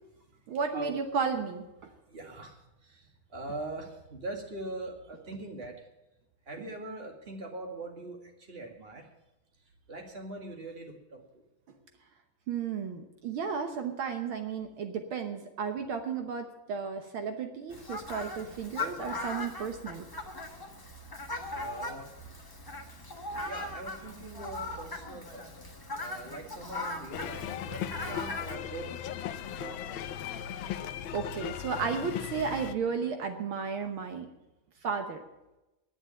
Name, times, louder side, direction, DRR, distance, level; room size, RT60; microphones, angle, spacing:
voice 1, 0.5-1.9 12.5-20.1 28.1-28.2 31.1-34.3 34.8-35.2, right 6 dB, 70° right, 6 dB, 1.9 m, -33 dB
voice 2, 1.8-5.9 6.5-9.1 9.9-11.4 20.4-20.6 21.5-22.1 23.4-25.5 26.0-28.9 29.6-30.0, right 2 dB, 25° right, 2 dB, 2.3 m, -42 dB
Fowl, 17.7-28.6, left 2 dB, 15° left, 1.0 m, -39 dB
sound 1, 27.1-32.7, left 10 dB, 75° left, 1.4 m, -37 dB
10.5 x 10.0 x 8.7 m, 0.98 s
omnidirectional pair, 2.4 m